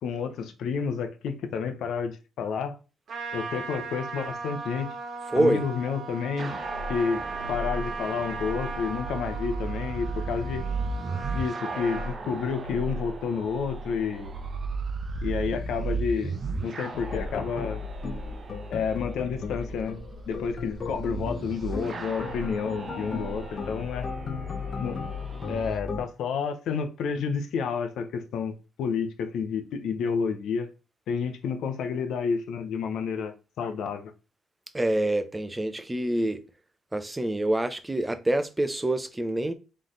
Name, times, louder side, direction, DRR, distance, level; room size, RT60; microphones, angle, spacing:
voice 1, 0.0-2.8 3.3-4.9 5.3-6.5 6.9-10.7 11.3-14.3 15.2-16.4 16.6-17.8 18.7-19.9 20.3-24.1 24.8-25.0 25.5-30.7 31.1-34.0, left 6 dB, 75° left, 0.8 m, -30 dB
Trumpet, 3.1-12.2, right 4 dB, 60° right, 1.2 m, -37 dB
voice 2, 5.3-5.6 34.7-36.4 36.9-39.5, right 1 dB, 15° right, 0.7 m, -26 dB
sound 1, 6.4-25.8, right 3 dB, 45° right, 0.8 m, -36 dB
sound 2, 16.9-26.0, left 4 dB, 45° left, 1.0 m, -36 dB
4.0 x 3.3 x 3.9 m
cardioid pair, 90°, 0 cm